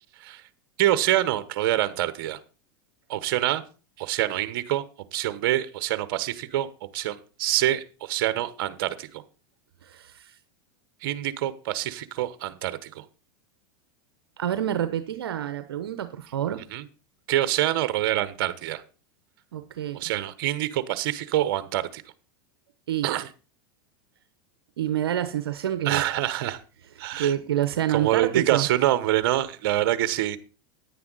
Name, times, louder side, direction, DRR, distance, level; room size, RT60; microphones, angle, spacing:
voice 1, 0.8-2.4 3.1-3.6 4.0-4.8 5.1-9.2 11.0-13.0 16.6-16.8 17.3-18.8 19.9-22.0 23.0-23.3 25.8-26.6 27.0-27.3 27.9-30.4, right 13 dB, 65° right, 13 dB, 1.1 m, -26 dB
voice 2, 9.9-10.3 14.4-16.6 19.5-20.1 22.9-23.1 24.8-26.0 27.1-28.7, right 11 dB, 85° right, 10 dB, 0.9 m, -27 dB
9.9 x 9.6 x 4.0 m, 0.34 s
hypercardioid pair, 105°, 12 cm